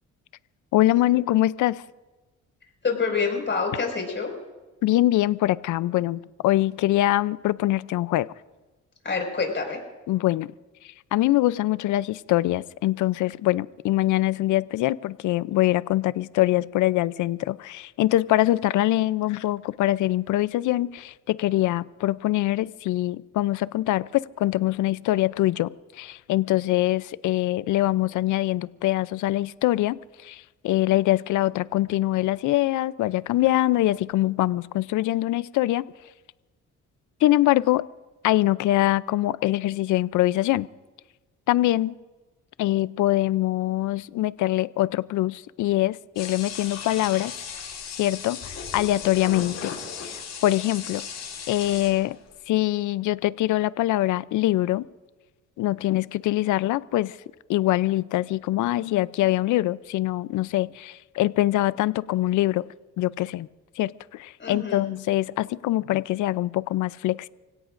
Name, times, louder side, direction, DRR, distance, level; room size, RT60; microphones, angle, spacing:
voice 1, 0.7-1.8 4.8-8.3 10.1-10.5 11.1-35.9 37.2-37.8 38.2-40.7 41.5-42.0 42.6-47.3 48.0-49.7 50.0-51.1 51.5-52.2 52.5-54.9 55.6-57.2 57.5-62.7 63.0-63.5 63.8-67.3, left 15 dB, 80° left, 18 dB, 0.5 m, -23 dB
voice 2, 2.8-4.3 9.0-9.8 64.4-64.9, left 5 dB, 40° left, 1 dB, 5.6 m, -27 dB
sound 1, 46.2-52.3, left 6 dB, 60° left, 6.7 m, -36 dB
29.5 x 17.0 x 2.6 m, 1.2 s
cardioid pair, 90°, 30 cm